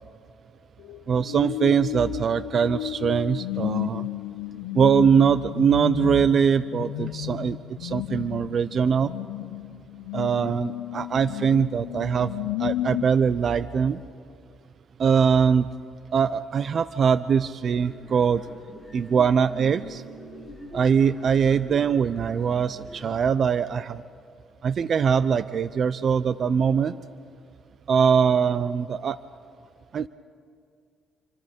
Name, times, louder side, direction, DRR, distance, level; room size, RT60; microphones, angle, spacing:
sound 1, 0.8-13.1, left 17 dB, 90° left, 0.5 m, -33 dB
voice 1, 1.1-4.1 4.7-9.1 10.1-12.3 12.6-14.0 15.0-15.7 16.1-18.4 18.9-20.0 20.7-24.0 24.6-27.0 27.9-29.2 29.9-30.1, right 7 dB, 50° right, 15 dB, 0.6 m, -22 dB
sound 2, 17.7-23.1, equal, 10° right, 5.7 m, -43 dB
28.0 x 25.0 x 5.3 m, 2.2 s
cardioid pair, 85°, 0 cm